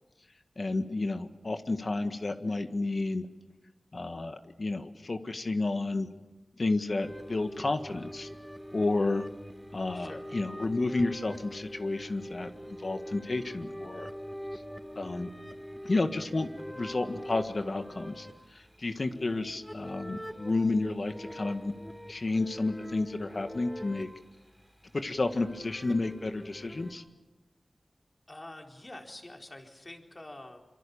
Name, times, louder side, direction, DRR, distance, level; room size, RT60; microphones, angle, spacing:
voice 1, 0.6-3.3 3.9-6.1 6.6-8.3 8.7-9.2 9.7-14.1 14.5-14.6 15.0-15.3 15.8-18.3 18.5-21.7 22.1-24.1 24.9-27.0, left 2 dB, 55° left, 7 dB, 1.8 m, -31 dB
sound 1, 7.0-26.9, equal, ahead, 3.5 m, -44 dB
voice 2, 28.3-30.6, left 1 dB, 35° left, 2 dB, 4.2 m, -46 dB
26.5 x 25.0 x 7.1 m, 1.1 s
wide cardioid pair, 65°, 0 cm